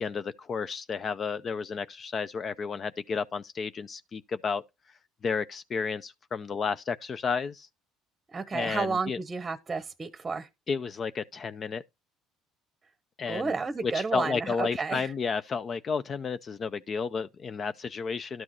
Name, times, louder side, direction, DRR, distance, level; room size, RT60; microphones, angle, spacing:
voice 1, 0.0-4.6 5.2-7.7 8.5-9.2 10.7-11.8 13.2-13.5 13.8-18.4, left 5 dB, 40° left, 0.5 m, -32 dB
voice 2, 8.3-10.5 13.3-15.1, right 4 dB, 25° right, 0.8 m, -31 dB
12.0 x 6.1 x 3.0 m
supercardioid pair, 95°, 0 cm